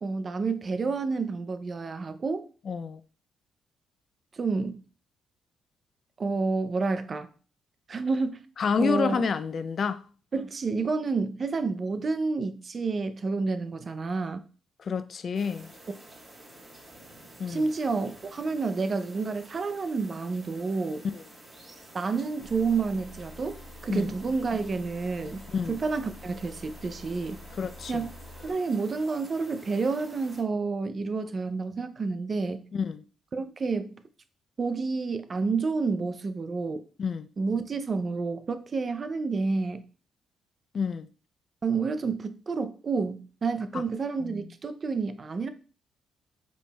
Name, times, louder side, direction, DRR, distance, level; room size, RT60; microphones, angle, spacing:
voice 1, 0.0-2.5 4.3-4.8 6.2-7.3 7.9-8.4 8.8-9.2 10.3-14.4 17.5-21.1 21.9-25.4 25.7-27.4 27.9-28.1 28.4-32.7 33.3-33.9 34.6-36.9 37.4-39.8 41.6-45.5, right 4 dB, 40° right, 0.4 m, -29 dB
voice 2, 2.7-3.0 8.6-10.0 14.8-15.7 17.4-17.7 21.1-21.2 23.9-24.1 25.5-25.8 27.6-28.1 32.7-33.0 37.0-37.3 40.7-41.1 43.7-43.8 44.2-44.4, left 5 dB, 50° left, 0.3 m, -29 dB
sound 1, 15.3-30.4, right 1 dB, 25° right, 2.0 m, -50 dB
sound 2, 22.4-28.5, left 2 dB, 70° left, 1.3 m, -47 dB
5.1 x 3.3 x 2.2 m
cardioid pair, 90°, 0 cm